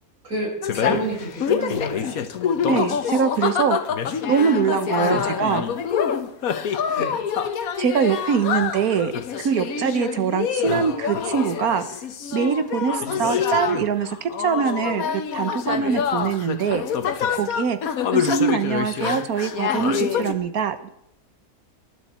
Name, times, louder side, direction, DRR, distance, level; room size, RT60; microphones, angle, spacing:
voice 1, 0.2-2.2 5.0-5.2 7.0-7.2 13.0-13.2, right 2 dB, 65° right, -2 dB, 6.2 m, -30 dB
sound 1, 0.6-20.3, left 7 dB, 75° left, 1.5 m, -26 dB
voice 2, 2.7-3.8 4.3-5.6 7.8-11.8 12.3-16.8 17.3-17.8 18.1-20.9, right 7 dB, 80° right, 11 dB, 1.6 m, -23 dB
19.5 x 11.0 x 4.4 m, 0.77 s
omnidirectional pair, 1.5 m